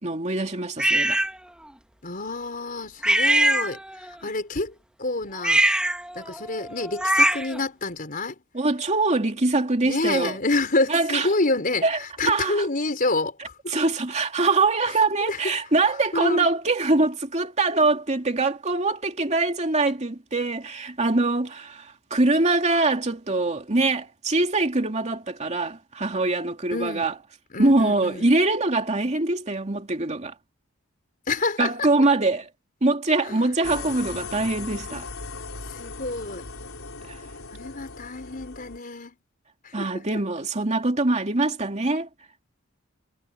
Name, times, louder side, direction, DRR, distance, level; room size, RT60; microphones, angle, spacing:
voice 1, 0.0-1.2 8.5-10.4 10.9-11.3 11.8-12.0 12.2-12.7 13.7-27.1 27.6-30.3 31.6-32.5 32.8-35.1 37.1-37.2 39.7-42.1, right 2 dB, 30° right, 2.7 m, -23 dB
sound 1, 0.8-1.3 3.0-4.1 5.4-7.6, right 1 dB, 5° right, 1.2 m, -22 dB
voice 2, 2.0-3.8 4.2-4.7 5.0-5.6 6.1-8.4 9.8-13.5 15.2-15.4 16.1-16.5 26.7-27.1 27.5-28.3 31.3-31.9 33.3-33.4 35.7-36.4 37.5-39.1 39.8-39.9, left 2 dB, 40° left, 4.3 m, -28 dB
sound 2, 33.6-38.8, left 4 dB, 65° left, 5.5 m, -38 dB
head